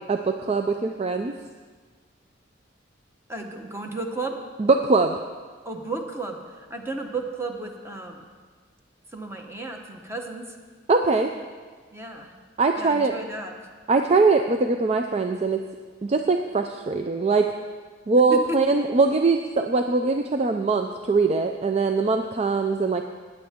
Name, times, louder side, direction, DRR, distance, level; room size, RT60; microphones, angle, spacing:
voice 1, 0.0-1.3 4.6-5.2 10.9-11.3 12.6-13.1 13.9-15.6 16.0-17.5 18.1-23.0, right 4 dB, 35° right, 5 dB, 0.4 m, -22 dB
voice 2, 3.3-4.4 5.6-8.3 9.1-10.6 11.9-12.3 12.8-13.5 18.5-18.6, right 2 dB, 15° right, 3 dB, 1.0 m, -33 dB
16.5 x 9.3 x 3.6 m, 1.5 s
head